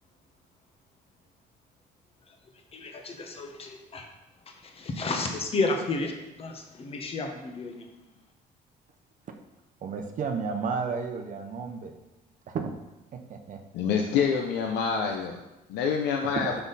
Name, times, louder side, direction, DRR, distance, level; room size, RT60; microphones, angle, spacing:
voice 1, 2.7-4.1 4.5-6.1 6.4-7.9, left 3 dB, 35° left, 3 dB, 1.1 m, -32 dB
voice 2, 9.8-11.9 12.5-12.7 13.1-13.6 16.2-16.6, right 5 dB, 50° right, 4 dB, 0.7 m, -32 dB
voice 3, 13.7-15.4 15.7-16.5, left 6 dB, 85° left, 3 dB, 0.7 m, -26 dB
6.1 x 5.6 x 4.1 m, 0.98 s
cardioid pair, 110°, 17 cm